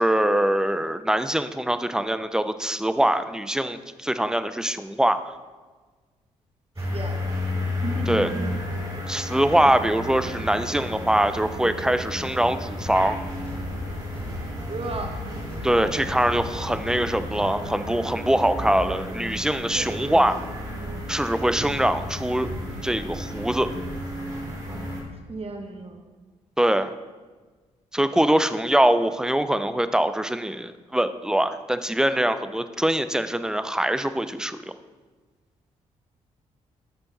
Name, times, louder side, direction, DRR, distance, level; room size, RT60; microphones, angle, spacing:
voice 1, 0.0-5.2 8.1-8.3 9.1-13.2 15.6-20.4 21.1-22.5 22.8-23.7 26.6-26.9 27.9-34.7, right 1 dB, 5° right, 11 dB, 0.5 m, -23 dB
sound 1, 6.8-25.0, left 1 dB, 25° right, 2.5 m, -33 dB
voice 2, 6.8-7.4 7.8-8.6 14.7-15.2 19.7-20.4 25.3-26.0, right 3 dB, 40° right, 4 dB, 1.4 m, -34 dB
sound 2, 12.7-17.8, left 1 dB, 85° left, 1.9 m, -38 dB
8.2 x 5.6 x 4.1 m, 1.4 s
hypercardioid pair, 45°, 15 cm